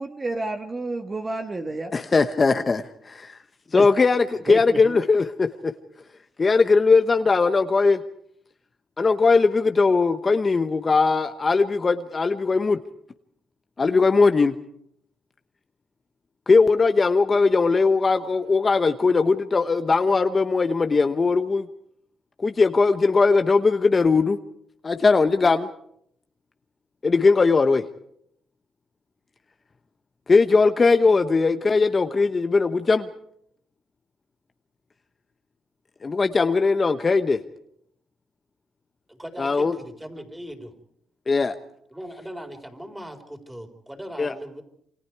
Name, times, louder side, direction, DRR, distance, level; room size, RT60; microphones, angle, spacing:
voice 1, 0.0-1.9 3.8-3.9 4.5-5.0, right 2 dB, 25° right, 1.6 m, -30 dB
voice 2, 1.9-3.4 3.7-5.7 6.4-8.0 9.0-12.8 13.8-14.5 16.5-21.7 22.4-24.4 24.8-25.7 27.0-27.8 30.3-33.1 36.0-37.4 39.4-39.8 41.3-41.5 44.2-44.3, left 4 dB, 30° left, 1.0 m, -19 dB
voice 3, 39.1-40.7 41.9-44.6, equal, 5° right, 4.2 m, -39 dB
28.0 x 24.5 x 4.7 m
cardioid pair, 90°, 0 cm